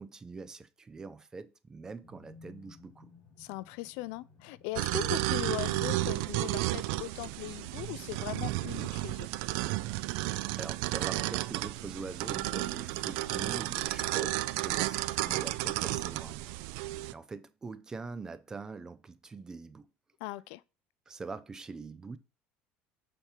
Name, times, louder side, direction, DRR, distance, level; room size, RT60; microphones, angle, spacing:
voice 1, 0.0-3.1 10.6-16.4 17.1-19.9 21.1-22.2, right 4 dB, 15° right, 0.5 m, -43 dB
sound 1, 2.0-15.8, left 4 dB, 30° left, 1.9 m, -60 dB
voice 2, 3.4-9.3 20.2-20.6, left 17 dB, 80° left, 0.4 m, -39 dB
sound 2, 4.8-17.1, right 18 dB, 80° right, 0.4 m, -32 dB
7.1 x 3.4 x 4.5 m
cardioid pair, 160°, 4 cm